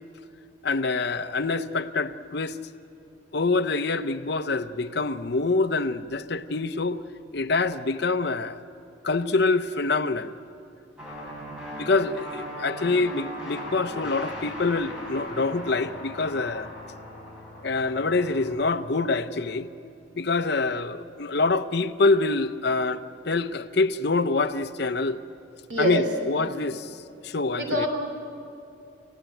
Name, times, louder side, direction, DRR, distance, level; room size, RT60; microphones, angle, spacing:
voice 1, 0.6-2.6 3.3-7.0 7.3-8.6 9.0-10.3 11.8-16.7 17.6-19.7 20.1-25.2 25.8-27.0 27.2-27.9, left 3 dB, 60° left, 0.8 m, -25 dB
sound 1, 11.0-18.5, equal, 5° right, 6.8 m, -38 dB
voice 2, 25.7-26.1 27.5-27.9, right 1 dB, 75° right, 3.1 m, -25 dB
28.0 x 16.0 x 9.1 m
head